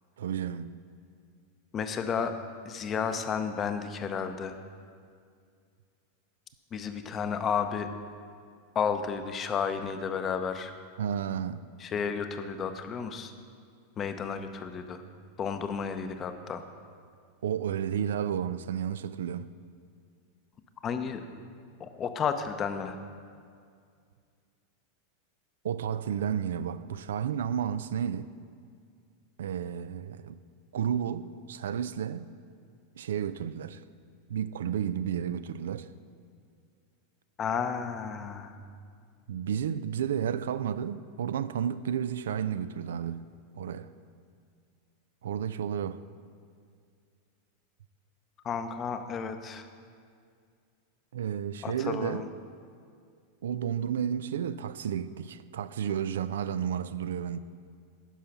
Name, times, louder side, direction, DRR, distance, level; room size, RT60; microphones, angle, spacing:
voice 1, 0.2-0.8 11.0-11.6 17.4-19.5 25.6-28.3 29.4-30.4 30.7-32.3 33.0-33.8 34.3-35.9 39.3-43.2 43.6-43.9 45.2-46.0 51.1-52.2 53.4-57.4, right 8 dB, 75° right, 0.3 m, -32 dB
voice 2, 1.7-2.3 2.6-4.6 6.7-7.9 8.7-10.8 11.8-13.3 14.0-15.0 15.4-16.6 20.8-21.2 21.8-23.0 37.4-38.6 48.4-49.7 51.6-52.3, left 6 dB, 30° left, 0.7 m, -32 dB
10.0 x 5.6 x 5.9 m
hypercardioid pair, 100°, 0 cm